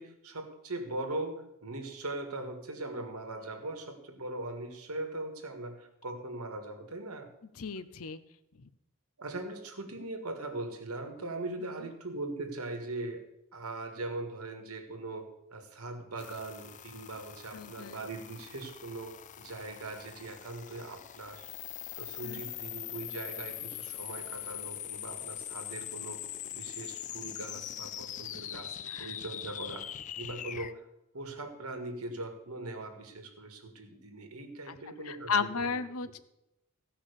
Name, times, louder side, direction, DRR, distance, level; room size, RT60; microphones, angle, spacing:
voice 1, 0.0-7.3 9.2-13.2 13.5-21.5 22.0-26.2 26.5-29.9 30.2-30.9 31.1-35.8, right 2 dB, 85° right, 5 dB, 2.0 m, -40 dB
voice 2, 7.6-8.2 17.5-18.0 22.2-22.4 28.9-29.1 34.7-34.8 35.1-36.2, left 5 dB, 75° left, 13 dB, 0.7 m, -34 dB
sound 1, 16.2-30.7, left 11 dB, 35° left, 0.4 m, -42 dB
15.5 x 5.8 x 6.7 m, 0.85 s
head